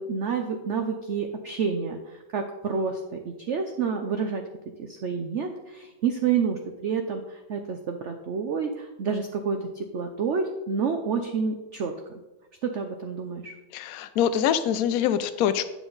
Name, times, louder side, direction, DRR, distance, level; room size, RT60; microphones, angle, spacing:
voice 1, 0.0-4.4 4.8-11.9 12.6-13.5, right 5 dB, 85° right, 5 dB, 0.6 m, -29 dB
voice 2, 13.7-15.6, left 9 dB, 70° left, 11 dB, 0.8 m, -24 dB
9.7 x 6.0 x 3.9 m, 1.1 s
omnidirectional pair, 2.0 m